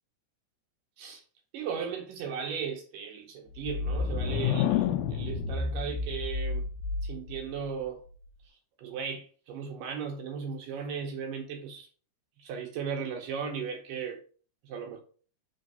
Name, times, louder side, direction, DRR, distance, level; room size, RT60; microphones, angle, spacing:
voice 1, 1.5-6.6 7.0-8.0 8.8-11.9 12.4-14.2 14.6-15.0, right 6 dB, 75° right, 2.0 m, -36 dB
sound 1, 3.6-7.4, left 6 dB, 80° left, 2.2 m, -29 dB
5.4 x 3.7 x 5.3 m
omnidirectional pair, 4.6 m